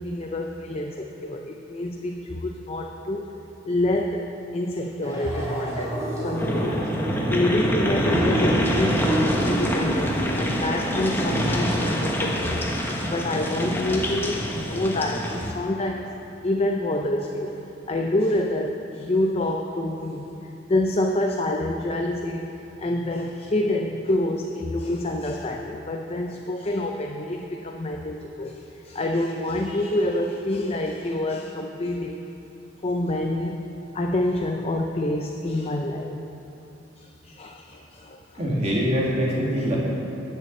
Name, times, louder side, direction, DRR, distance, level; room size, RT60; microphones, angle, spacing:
voice 1, 0.0-3.2 3.7-4.3 4.5-6.9 7.3-12.7 13.1-16.2 16.4-17.5 17.9-20.3 20.7-22.5 22.8-32.2 32.8-33.7 33.9-36.2 37.0-38.4 39.6-39.7, left 1 dB, 30° left, 1 dB, 0.6 m, -27 dB
sound 1, 5.0-11.8, right 1 dB, 15° right, 2.7 m, -31 dB
sound 2, 6.4-15.5, equal, 10° left, 1.1 m, -25 dB
voice 2, 38.4-39.8, equal, 35° right, -4 dB, 1.9 m, -23 dB
10.5 x 6.8 x 7.3 m, 2.9 s
head